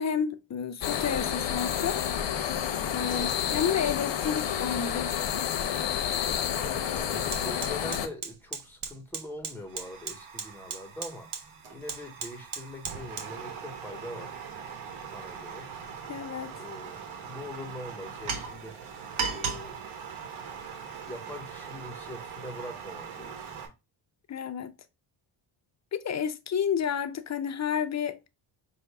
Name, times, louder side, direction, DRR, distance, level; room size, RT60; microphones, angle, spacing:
voice 1, 0.0-2.0 2.9-5.1 16.1-16.6 24.3-24.7 25.9-28.3, left 7 dB, 35° left, 0.5 m, -30 dB
sound 1, 0.8-8.1, left 9 dB, 65° left, 0.8 m, -30 dB
Fire, 6.2-6.3 6.7-23.7, right 6 dB, 90° right, 1.2 m, -39 dB
voice 2, 6.5-14.4 15.1-15.7 16.6-18.8 19.2-19.8 21.0-23.5, left 1 dB, 5° left, 1.2 m, -43 dB
5.4 x 2.6 x 3.4 m
cardioid pair, 115°, 47 cm